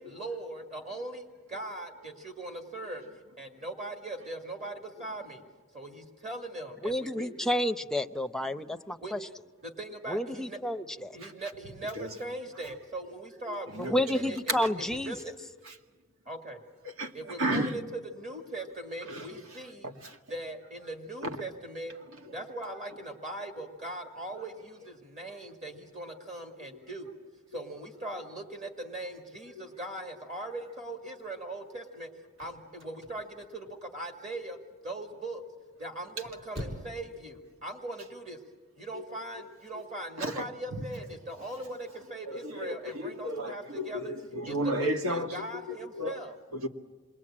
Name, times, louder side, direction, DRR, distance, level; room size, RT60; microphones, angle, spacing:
voice 1, 0.0-3.0 3.4-5.4 5.7-7.6 9.0-9.1 9.6-10.6 11.1-14.4 15.0-15.3 16.3-16.6 17.1-17.8 18.2-19.9 20.3-21.9 22.3-27.1 27.5-32.1 32.4-34.6 34.8-35.4 35.8-38.4 38.8-44.1 44.5-46.4, right 1 dB, 35° right, 4 dB, 2.1 m, -40 dB
voice 2, 6.8-9.2 10.1-11.1 13.9-15.2, left 1 dB, ahead, 7 dB, 0.7 m, -30 dB
voice 3, 11.8-12.2 13.4-14.8 15.6-15.8 16.8-17.8 19.0-20.2 21.2-21.4 22.1-22.5 29.5-29.6 38.9-39.0 39.3-39.4 39.7-39.8 40.2-40.9 42.2-46.2 46.5-46.7, right 1 dB, 85° right, 3 dB, 2.1 m, -35 dB
sound 1, 32.1-34.2 34.6-35.1 35.9-37.1 37.4-37.5, equal, 60° right, 5.5 m, -43 dB
27.5 x 22.0 x 8.7 m, 1.4 s
head